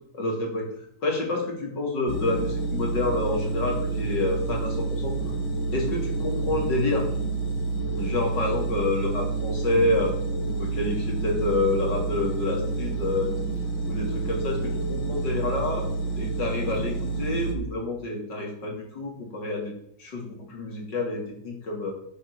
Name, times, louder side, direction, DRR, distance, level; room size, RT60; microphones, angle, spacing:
voice 1, 0.1-0.7 1.0-5.1 5.7-7.1 7.9-10.1 10.5-13.3 13.9-15.9 16.2-19.7 20.0-21.9, left 2 dB, 60° left, 1 dB, 3.8 m, -28 dB
sound 1, 2.1-17.5, right 3 dB, 85° left, 2.5 m, -29 dB
10.0 x 9.1 x 7.1 m, 0.69 s
omnidirectional pair, 2.1 m